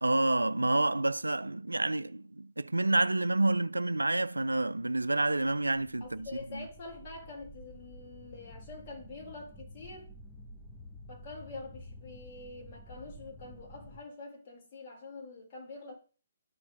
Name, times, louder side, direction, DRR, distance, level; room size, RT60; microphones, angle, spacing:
voice 1, 0.0-6.3 6.5-6.6, right 2 dB, 85° right, 0.3 m, -28 dB
sound 1, 5.2-14.0, left 1 dB, 10° left, 1.4 m, -51 dB
voice 2, 6.0-10.1 11.1-15.9, left 3 dB, 40° left, 3.6 m, -46 dB
12.5 x 4.8 x 3.6 m
figure-of-eight pair, 135°, 0 cm